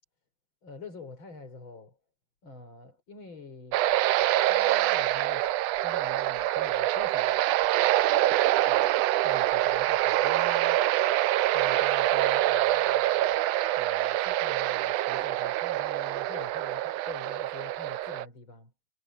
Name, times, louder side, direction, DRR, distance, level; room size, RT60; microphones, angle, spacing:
voice 1, 0.6-2.0 2.4-3.8 4.4-5.5 5.8-7.7 8.7-8.9 9.2-10.8 11.5-13.4 13.8-18.7, left 3 dB, 35° left, 5.3 m, -46 dB
sound 1, 3.7-18.2, right 15 dB, 85° right, 1.4 m, -25 dB
omnidirectional pair, 3.7 m